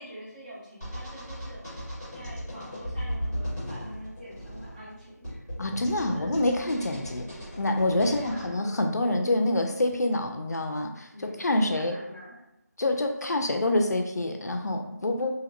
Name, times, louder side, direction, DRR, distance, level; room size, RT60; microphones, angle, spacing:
voice 1, 0.0-1.6 2.1-5.4 6.1-6.4 8.1-8.6 11.1-12.4, equal, 25° right, -9 dB, 1.0 m, -45 dB
sound 1, 0.8-8.5, equal, 10° right, 0.6 m, -37 dB
voice 2, 5.6-7.3 7.6-12.0 12.8-15.3, left 1 dB, 65° left, 4 dB, 0.4 m, -26 dB
2.8 x 2.4 x 2.9 m, 0.86 s
figure-of-eight pair, 175°, 10 cm